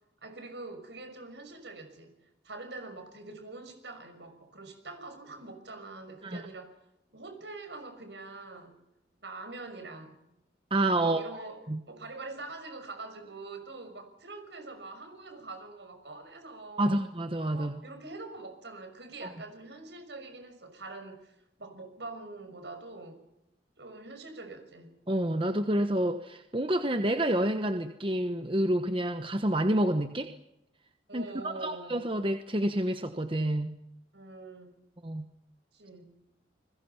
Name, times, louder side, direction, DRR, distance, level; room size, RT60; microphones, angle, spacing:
voice 1, 0.2-2.1 2.4-6.8 7.1-8.8 9.2-10.2 11.0-17.0 17.5-21.3 21.6-23.2 23.8-24.9 31.1-32.0 34.1-34.8 35.7-36.1, right 3 dB, 75° right, 7 dB, 6.2 m, -44 dB
voice 2, 10.7-11.4 11.7-11.8 16.8-17.7 19.2-19.3 25.1-30.3 31.1-33.8 35.0-35.3, right 1 dB, 30° right, 7 dB, 1.1 m, -28 dB
29.5 x 21.5 x 5.9 m, 0.84 s
head